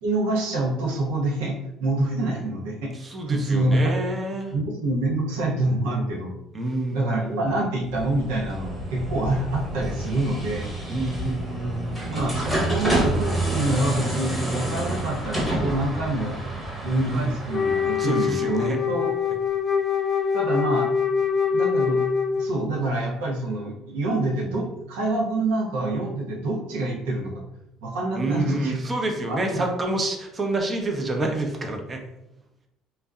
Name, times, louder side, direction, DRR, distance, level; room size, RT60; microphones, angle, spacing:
voice 1, 0.0-2.9 3.3-3.8 4.5-6.3 6.9-10.7 12.1-16.4 16.8-19.1 20.3-20.9 21.5-22.0 22.4-27.3 27.8-28.8 29.3-29.6, right 2 dB, 80° right, -2 dB, 0.6 m, -26 dB
voice 2, 2.9-4.5 6.5-7.4 10.9-12.2 17.0-17.3 18.0-18.8 28.2-32.0, right 2 dB, 35° right, 3 dB, 0.5 m, -28 dB
sound 1, 7.9-18.6, right 1 dB, ahead, 0.9 m, -29 dB
Wind instrument woodwind instrument, 17.5-22.7, left 6 dB, 30° left, 0.3 m, -24 dB
2.6 x 2.0 x 2.3 m, 0.85 s
hypercardioid pair, 65°, 0 cm